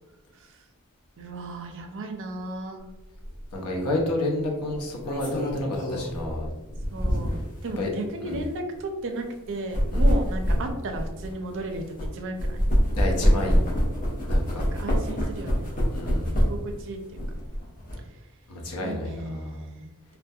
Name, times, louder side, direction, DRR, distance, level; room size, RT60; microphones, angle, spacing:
voice 1, 1.2-2.8 6.9-7.3 7.6-11.8 12.1-12.6 14.7-15.7 16.5-17.0 18.8-19.9, right 1 dB, 60° right, 4 dB, 0.4 m, -34 dB
sound 1, 3.2-3.4 4.7-7.6 8.2-8.4 9.5-12.1 12.4-16.7 17.1-17.9, equal, 40° left, 0.6 m, -25 dB
voice 2, 3.5-6.5 7.8-7.9 8.2-8.4 9.9-10.1 12.9-13.6 14.2-14.6 15.9-16.4 18.5-19.6, left 1 dB, 85° left, 0 dB, 0.6 m, -30 dB
2.2 x 2.1 x 2.6 m, 1.0 s
head